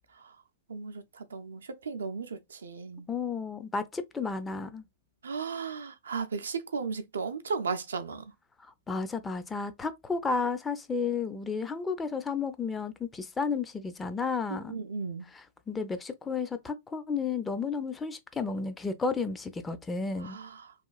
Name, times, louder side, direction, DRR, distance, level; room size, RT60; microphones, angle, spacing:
voice 1, 0.7-3.1 5.2-8.3 14.7-15.3 20.2-20.9, right 5 dB, 85° right, 0.4 m, -36 dB
voice 2, 3.1-4.8 8.9-14.8 15.7-20.4, left 4 dB, 15° left, 0.4 m, -32 dB
3.0 x 2.2 x 2.3 m
hypercardioid pair, 110°, 0 cm